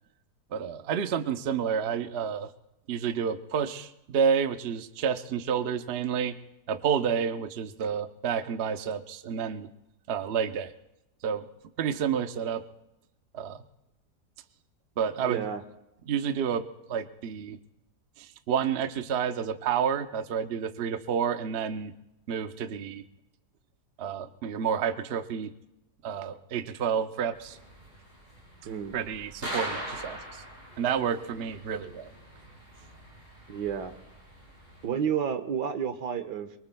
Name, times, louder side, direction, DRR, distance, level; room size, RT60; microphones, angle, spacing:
voice 1, 0.5-2.5 2.9-6.3 6.7-9.7 10.1-10.7 11.2-11.5 11.8-12.6 13.3-13.6 15.0-15.4 16.1-17.6 18.2-21.9 22.3-23.0 24.0-25.5 26.0-27.6 28.9-30.4 30.8-32.1, right 7 dB, 55° right, 9 dB, 0.8 m, -29 dB
voice 2, 15.2-15.6 28.6-29.0 33.5-33.9 34.8-36.5, right 8 dB, 85° right, 8 dB, 1.6 m, -31 dB
sound 1, 27.3-34.8, right 1 dB, 35° right, 7.5 m, -42 dB
24.0 x 23.5 x 2.2 m, 0.89 s
omnidirectional pair, 1.8 m